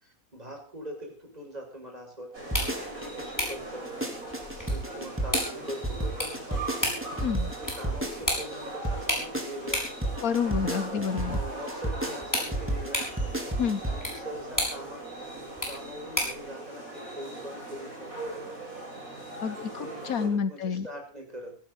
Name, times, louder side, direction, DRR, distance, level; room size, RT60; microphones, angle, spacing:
voice 1, 0.0-3.9 4.7-7.0 7.6-10.1 11.2-13.3 13.9-18.3 19.4-21.6, equal, 25° right, 1 dB, 6.5 m, -42 dB
sound 1, 2.3-20.3, right 2 dB, 65° right, 7.6 m, -40 dB
sound 2, 2.4-16.5, equal, 10° left, 6.5 m, -36 dB
sound 3, 2.5-3.3 3.7-8.6 8.8-14.0 14.3-14.4, right 2 dB, 10° right, 3.8 m, -31 dB
voice 2, 7.2-7.5 10.2-11.4 13.6-13.8 19.4-20.9, left 6 dB, 70° left, 13 dB, 1.4 m, -29 dB
17.5 x 15.5 x 4.1 m, 0.37 s
omnidirectional pair, 1.6 m